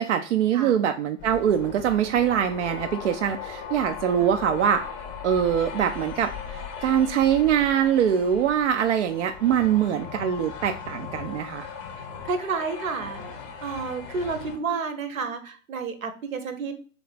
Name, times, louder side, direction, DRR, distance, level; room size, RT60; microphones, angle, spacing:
voice 1, 0.0-4.9 5.2-11.7, right 9 dB, 60° right, 7 dB, 0.5 m, -23 dB
sound 1, 1.2-14.6, left 6 dB, 20° left, 0.6 m, -38 dB
voice 2, 12.0-13.2 13.6-16.8, right 5 dB, 75° right, 9 dB, 1.0 m, -30 dB
3.7 x 3.4 x 4.0 m, 0.42 s
hypercardioid pair, 125°, 41 cm